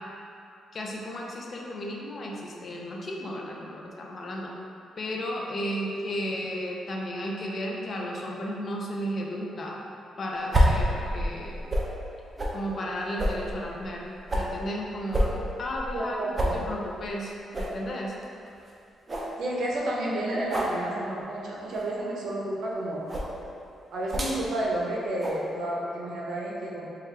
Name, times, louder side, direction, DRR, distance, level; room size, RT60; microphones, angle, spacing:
voice 1, 0.7-4.5 5.0-9.8 10.2-11.6 12.5-14.1 14.3-15.3 15.6-18.1, equal, 45° left, -2 dB, 0.5 m, -34 dB
sound 1, 10.5-11.9 12.4-12.6 13.2-14.5 15.1-16.1 16.4-16.6 17.0-17.1 17.5-17.7 18.2-18.3 18.7-18.8 19.1-19.3 20.5-20.7 21.7-21.9 23.1-23.3 24.1-24.4 25.2-25.4, equal, 25° right, 0.5 m, -27 dB
voice 2, 15.9-16.6 19.4-23.0 23.9-26.8, right 1 dB, 70° right, -4 dB, 0.7 m, -31 dB
4.5 x 2.3 x 3.2 m, 2.6 s
cardioid pair, 120°, 0 cm